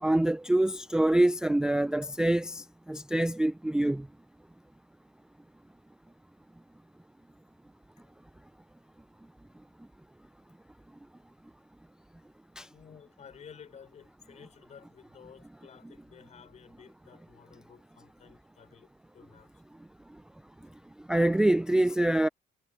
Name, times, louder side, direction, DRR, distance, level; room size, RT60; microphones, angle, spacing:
voice 1, 0.0-4.0 12.6-12.7 21.1-22.3, right 1 dB, 5° right, 0.4 m, -25 dB
voice 2, 9.4-9.7 12.7-19.5, left 7 dB, 40° left, 5.9 m, -54 dB
cardioid pair, 110°, 17 cm